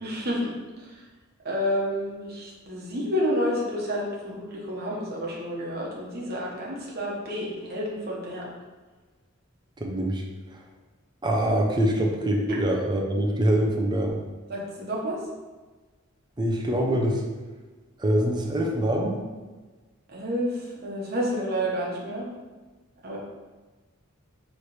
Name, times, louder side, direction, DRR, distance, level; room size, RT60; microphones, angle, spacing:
voice 1, 0.0-1.0 1.4-8.5 12.5-12.6 14.5-15.2 20.1-22.3 23.0-23.2, equal, 50° right, -4 dB, 1.0 m, -30 dB
voice 2, 9.8-10.2 10.5-10.6 11.2-14.2 16.4-17.2 18.0-19.2, right 1 dB, 20° right, 0 dB, 0.5 m, -24 dB
4.3 x 3.2 x 3.2 m, 1.3 s
head